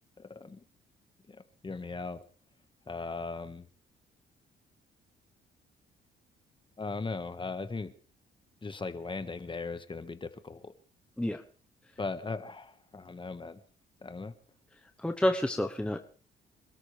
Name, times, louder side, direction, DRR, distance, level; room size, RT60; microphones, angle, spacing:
voice 1, 0.2-0.6 1.3-2.2 2.9-3.7 6.8-7.9 8.6-10.7 12.0-13.6 14.0-14.3, left 3 dB, 25° left, 10 dB, 1.6 m, -38 dB
voice 2, 15.0-16.0, left 1 dB, 5° left, 5 dB, 1.1 m, -29 dB
26.5 x 13.0 x 3.4 m, 0.40 s
cardioid pair, 90°, 20 cm